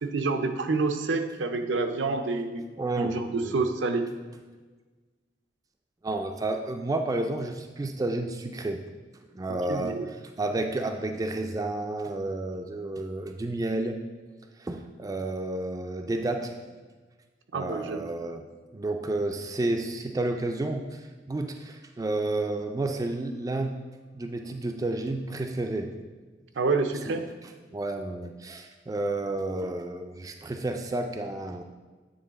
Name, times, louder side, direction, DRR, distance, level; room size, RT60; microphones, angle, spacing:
voice 1, 0.0-2.7 3.0-4.1 9.5-10.1 17.5-18.1 26.6-27.2, right 3 dB, 80° right, 7 dB, 0.5 m, -28 dB
voice 2, 2.8-3.2 3.4-3.6 6.0-8.8 9.3-10.0 10.4-14.0 14.6-16.6 17.5-18.5 18.7-23.8 24.1-25.9 27.1-27.2 27.7-31.6, right 2 dB, 20° right, 4 dB, 0.3 m, -31 dB
8.7 x 3.1 x 4.0 m, 1.3 s
head